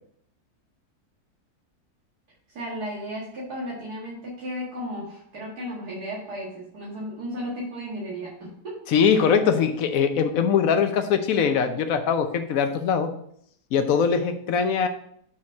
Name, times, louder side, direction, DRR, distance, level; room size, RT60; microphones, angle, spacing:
voice 1, 2.5-8.8 9.1-9.2, equal, 80° right, -6 dB, 2.4 m, -34 dB
voice 2, 8.9-13.1 13.7-14.9, left 6 dB, 65° left, 8 dB, 1.1 m, -22 dB
6.1 x 4.3 x 6.3 m, 0.68 s
omnidirectional pair, 1.7 m